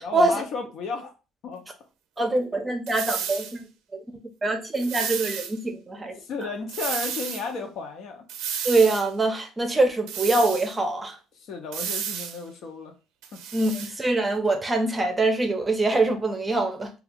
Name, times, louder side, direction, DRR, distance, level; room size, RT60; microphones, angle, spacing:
voice 1, 0.0-1.1 1.4-1.6 6.2-8.2 11.4-12.9 13.3-13.4, left 4 dB, 65° left, 0.7 m, -33 dB
voice 2, 2.2-3.6 3.9-4.0 4.4-6.2 8.6-11.2 13.5-16.9, right 2 dB, 20° right, 0.6 m, -24 dB
sound 1, 2.9-3.5 4.7-5.5 6.7-7.4 8.3-9.1 10.1-10.7 11.7-12.4 13.2-13.9, right 8 dB, 80° right, 0.5 m, -32 dB
2.7 x 2.3 x 3.5 m
cardioid pair, 110°, 0 cm